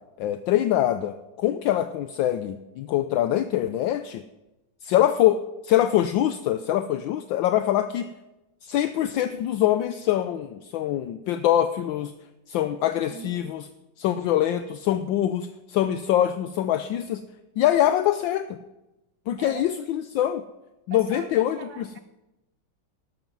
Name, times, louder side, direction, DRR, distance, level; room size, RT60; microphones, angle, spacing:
voice 1, 0.2-4.2 4.8-8.1 8.6-12.1 12.5-13.7 14.0-17.2 17.6-18.6 19.3-20.4 20.9-21.9, left 12 dB, 75° left, 10 dB, 1.3 m, -24 dB
voice 2, 13.1-13.5 19.4-19.7 20.9-22.0, right 7 dB, 75° right, 11 dB, 0.9 m, -41 dB
13.0 x 12.0 x 5.4 m, 0.97 s
omnidirectional pair, 2.2 m